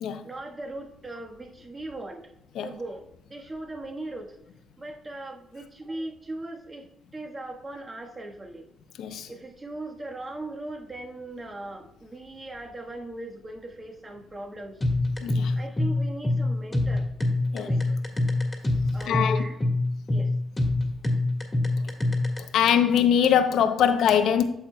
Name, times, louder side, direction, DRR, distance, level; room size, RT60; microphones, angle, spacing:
voice 1, 0.2-2.2 2.6-3.0 3.3-4.4 4.8-6.8 7.1-8.6 9.3-14.8 15.5-17.1 17.6-18.0 18.9-19.7 20.1-20.3, right 2 dB, 25° right, 1.4 m, -39 dB
voice 2, 9.0-9.3 15.2-15.5 17.5-17.7 19.1-19.4 22.5-24.4, left 8 dB, 75° left, 0.6 m, -22 dB
sound 1, 14.8-22.4, left 2 dB, 20° left, 1.7 m, -25 dB
8.8 x 7.3 x 2.3 m
cardioid pair, 90°, 0 cm